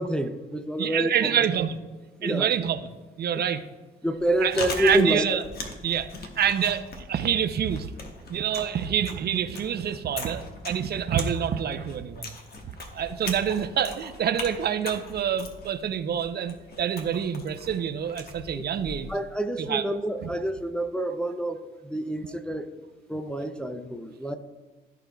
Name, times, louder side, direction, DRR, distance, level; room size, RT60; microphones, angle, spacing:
voice 1, 0.0-1.4 2.2-2.5 3.3-3.4 4.0-5.4 18.5-18.6 19.1-22.7 23.1-24.4, right 1 dB, 5° left, 6 dB, 0.4 m, -28 dB
voice 2, 0.8-1.8 2.2-2.8 3.2-3.6 4.4-5.4 5.8-6.1 6.4-7.9 8.3-12.3 12.9-19.1 19.6-19.8 20.2-20.3, right 8 dB, 55° right, 10 dB, 0.5 m, -27 dB
Chewing mastication, 4.1-19.2, left 3 dB, 50° left, 1.2 m, -40 dB
13.5 x 4.6 x 2.3 m, 1.3 s
cardioid pair, 90°, 20 cm